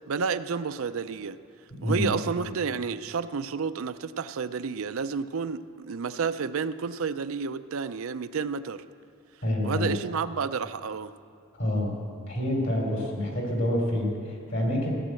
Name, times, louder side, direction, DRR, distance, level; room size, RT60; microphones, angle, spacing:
voice 1, 0.1-1.4 1.8-8.8 9.6-11.1, right 5 dB, 75° right, 12 dB, 0.5 m, -30 dB
voice 2, 1.7-2.1 9.4-10.0 11.5-11.9 12.3-14.9, left 1 dB, 55° left, 0 dB, 3.3 m, -27 dB
15.0 x 9.7 x 7.7 m, 2.4 s
head